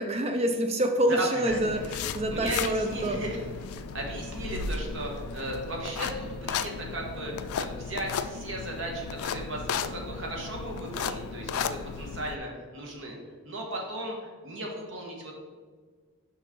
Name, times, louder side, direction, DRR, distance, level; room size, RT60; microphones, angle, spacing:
voice 1, 0.0-3.2, right 1 dB, 30° right, 5 dB, 0.4 m, -27 dB
voice 2, 1.1-1.6 2.3-13.2 13.4-15.3, right 1 dB, 60° right, 0 dB, 1.4 m, -36 dB
sound 1, 1.5-12.3, left 6 dB, 80° left, 0.4 m, -35 dB
6.4 x 5.3 x 3.8 m, 1.5 s
head